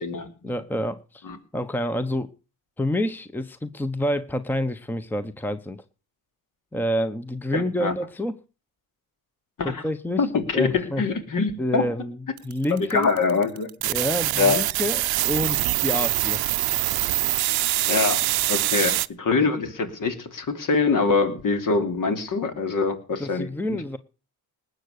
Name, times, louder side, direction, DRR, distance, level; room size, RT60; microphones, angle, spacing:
voice 1, 0.4-1.3 1.5-2.3 2.8-5.8 6.7-8.3 9.6-10.3 10.5-11.0 11.6-13.1 13.8-16.4 23.2-24.0, left 1 dB, 5° left, 0.9 m, -28 dB
voice 2, 7.5-7.9 9.6-9.8 10.2-11.8 12.9-13.7 14.4-14.6 17.9-23.8, left 4 dB, 55° left, 3.0 m, -24 dB
sound 1, 12.4-19.1, right 15 dB, 70° right, 0.7 m, -24 dB
19.5 x 8.0 x 6.6 m
cardioid pair, 105°, 39 cm